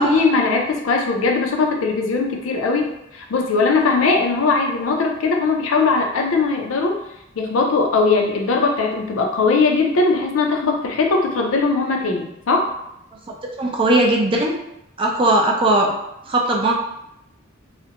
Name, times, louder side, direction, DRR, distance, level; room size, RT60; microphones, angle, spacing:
voice 1, 0.0-7.0 7.4-12.7, left 4 dB, 85° left, 1 dB, 0.5 m, -19 dB
voice 2, 13.6-14.5 15.0-15.9 16.3-16.7, right 1 dB, 25° right, 0 dB, 0.4 m, -18 dB
2.4 x 2.1 x 2.8 m, 0.82 s
head